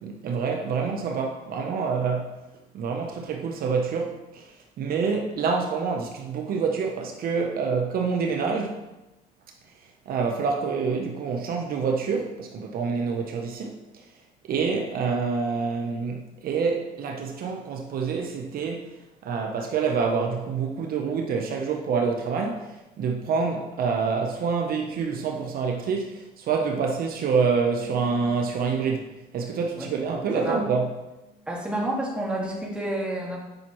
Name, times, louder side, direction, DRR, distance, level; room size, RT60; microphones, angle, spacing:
voice 1, 0.0-2.4 2.7-4.5 4.8-8.9 10.1-14.0 14.5-18.9 19.2-29.1 29.3-30.9, right 5 dB, 60° right, 0.9 m, -27 dB
voice 2, 30.3-30.7 31.5-33.4, right 1 dB, 5° right, 2.0 m, -29 dB
9.0 x 5.8 x 3.1 m
cardioid pair, 110°, 17 cm